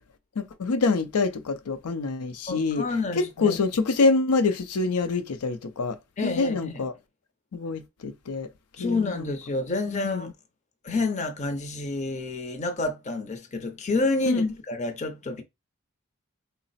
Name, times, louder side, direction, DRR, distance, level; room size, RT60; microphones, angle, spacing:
voice 1, 0.4-2.8 3.1-6.0 6.2-6.9 7.5-8.5 8.8-9.3 9.9-10.3 14.3-14.5, left 3 dB, 85° left, 0.5 m, -26 dB
voice 2, 2.5-3.6 6.2-6.9 8.8-10.3 10.8-15.4, left 3 dB, 30° left, 0.5 m, -29 dB
3.8 x 2.0 x 4.0 m
head